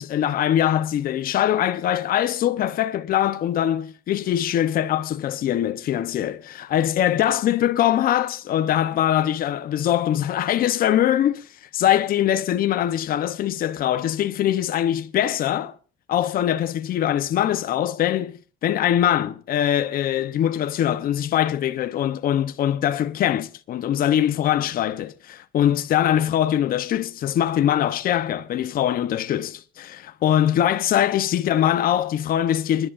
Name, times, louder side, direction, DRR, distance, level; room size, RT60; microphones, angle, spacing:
voice 1, 0.0-15.7 16.1-32.9, left 11 dB, 60° left, 0.9 m, -22 dB
28.0 x 11.5 x 2.6 m
cardioid pair, 110°, 17 cm